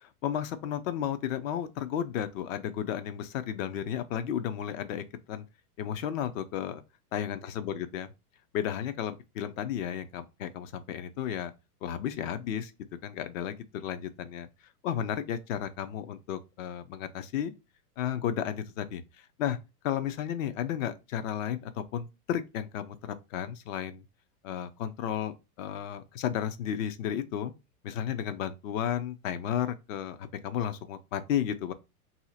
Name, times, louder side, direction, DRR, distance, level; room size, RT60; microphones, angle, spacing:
voice 1, 0.2-5.4 5.8-6.8 7.1-8.1 8.5-11.5 11.8-12.7 13.0-14.5 14.8-17.5 18.0-19.0 19.4-19.6 19.8-24.0 24.4-27.5 27.8-31.7, left 10 dB, 55° left, 0.6 m, -33 dB
2.8 x 2.4 x 4.0 m
supercardioid pair, 135°, 46 cm